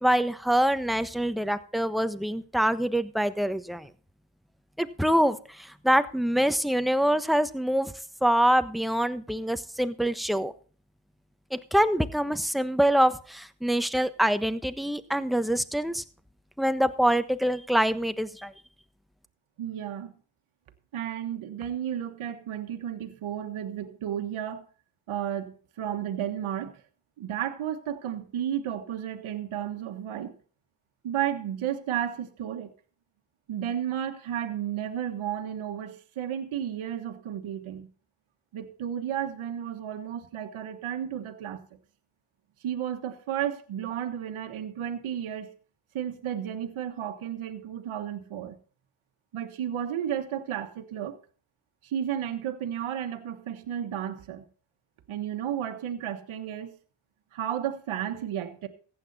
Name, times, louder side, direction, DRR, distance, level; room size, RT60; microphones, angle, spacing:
voice 1, 0.0-3.9 4.8-7.9 8.2-10.5 11.5-16.0 16.6-18.5, equal, ahead, 11 dB, 1.2 m, -25 dB
voice 2, 19.6-20.1 20.9-24.6 25.1-26.8 27.2-30.3 31.0-32.7 33.5-37.9 38.5-41.7 42.6-45.5 45.9-48.6 49.3-51.2 51.8-54.4 55.1-56.7 57.3-58.7, right 10 dB, 75° right, 6 dB, 1.5 m, -33 dB
15.0 x 9.3 x 4.2 m, 0.41 s
supercardioid pair, 50°, 49 cm